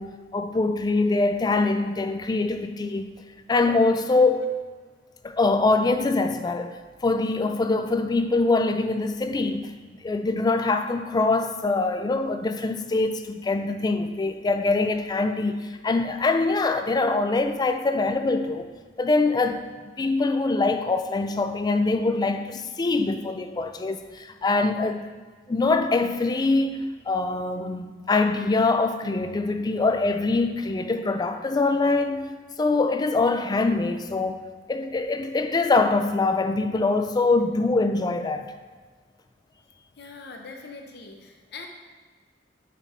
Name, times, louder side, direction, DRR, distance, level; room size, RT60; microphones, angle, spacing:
voice 1, 0.0-3.1 3.5-4.6 5.2-6.8 7.0-9.7 10.0-18.7 19.0-25.1 25.5-32.3 32.6-38.5, left 3 dB, 20° left, 8 dB, 0.3 m, -24 dB
voice 2, 40.0-41.7, left 4 dB, 60° left, 3 dB, 0.8 m, -42 dB
5.1 x 4.9 x 4.3 m, 1.4 s
head